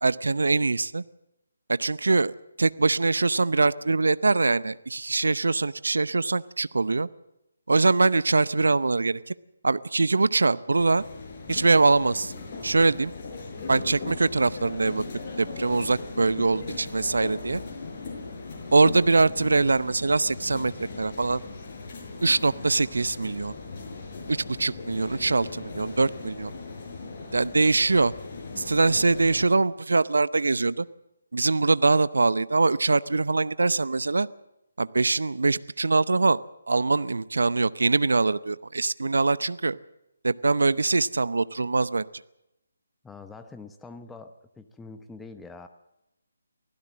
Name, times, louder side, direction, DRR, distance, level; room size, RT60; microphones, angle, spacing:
voice 1, 0.0-1.0 1.7-2.3 2.6-7.1 7.7-9.2 9.6-11.0 11.5-12.3 12.6-13.1 13.7-15.0 15.4-17.6 18.7-20.7 21.0-21.4 22.2-23.5 24.3-26.5 27.3-28.1 28.6-30.9 31.3-34.3 34.8-36.4 36.7-39.8 40.2-42.1, right 3 dB, 75° right, 18 dB, 0.7 m, -23 dB
sound 1, 10.8-29.5, left 3 dB, 35° left, 6.0 m, -38 dB
voice 2, 43.0-45.7, left 3 dB, 5° left, 8 dB, 0.9 m, -45 dB
24.0 x 16.0 x 7.5 m, 0.89 s
figure-of-eight pair, 150°, 0 cm